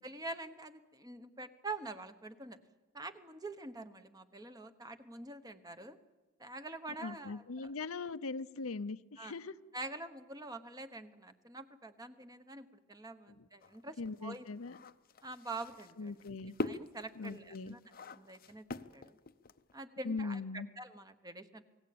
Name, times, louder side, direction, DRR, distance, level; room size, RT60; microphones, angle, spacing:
voice 1, 0.0-2.6 2.9-6.0 6.4-7.7 9.2-9.3 9.7-14.4 15.2-16.2 16.6-17.8 18.1-19.2 19.7-21.6, right 2 dB, 15° right, 9 dB, 1.1 m, -46 dB
voice 2, 7.0-9.5 14.0-14.7 16.0-16.5 17.2-17.8 20.0-20.7, left 4 dB, 75° left, 12 dB, 0.8 m, -40 dB
sound 1, 13.6-19.8, left 2 dB, 40° left, 0.7 m, -43 dB
28.5 x 19.0 x 8.7 m, 1.2 s
head